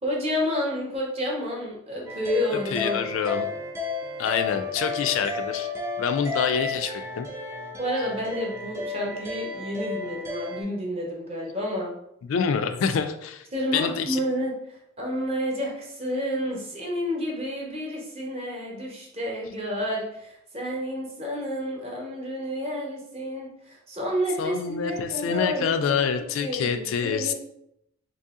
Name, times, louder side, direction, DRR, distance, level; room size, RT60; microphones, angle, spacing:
voice 1, 0.0-3.0 7.8-11.9 13.5-27.3, equal, 30° right, -2 dB, 0.9 m, -30 dB
sound 1, 2.1-10.6, left 4 dB, 15° right, 0.4 m, -33 dB
voice 2, 2.7-3.5 4.2-5.7 6.0-7.3 12.2-13.4 13.7-14.2 24.4-27.3, left 6 dB, 65° left, 8 dB, 0.3 m, -26 dB
2.9 x 2.8 x 3.5 m, 0.79 s
head